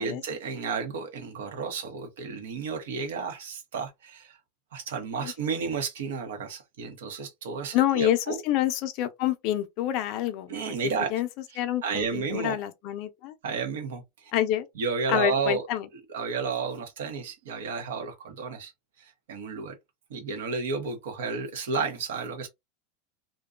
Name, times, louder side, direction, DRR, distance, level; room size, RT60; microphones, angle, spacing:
voice 1, 0.0-4.4 4.7-8.4 10.5-11.1 11.8-12.6 13.4-14.0 14.8-15.6 16.1-18.7 19.0-19.7 20.1-22.5, right 5 dB, 85° right, 0.9 m, -32 dB
voice 2, 7.7-10.7 11.1-11.3 11.6-13.3 14.3-14.7 15.1-15.9, left 12 dB, 45° left, 0.4 m, -27 dB
2.5 x 2.2 x 2.4 m
supercardioid pair, 160°, 0 cm